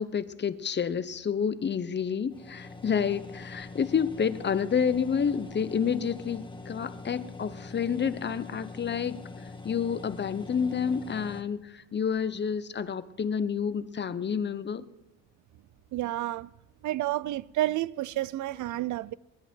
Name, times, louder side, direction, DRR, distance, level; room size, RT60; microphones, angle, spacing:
voice 1, 0.0-9.2 9.6-14.9, left 7 dB, 35° left, 0.9 m, -29 dB
sound 1, 2.3-11.4, left 3 dB, 15° left, 1.9 m, -43 dB
voice 2, 15.9-16.5 16.8-19.1, right 15 dB, 75° right, 0.5 m, -30 dB
22.5 x 11.0 x 4.5 m
cardioid pair, 90°, 30 cm